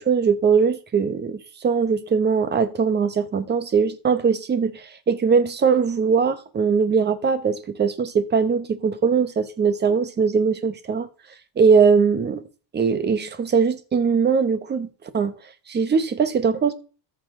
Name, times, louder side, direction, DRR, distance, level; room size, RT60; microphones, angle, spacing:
voice 1, 0.0-11.1 11.6-12.4 12.7-14.9 15.1-15.3 15.7-16.7, right 5 dB, 25° right, 1.0 m, -21 dB
14.0 x 6.8 x 3.7 m
cardioid pair, 180°, 42 cm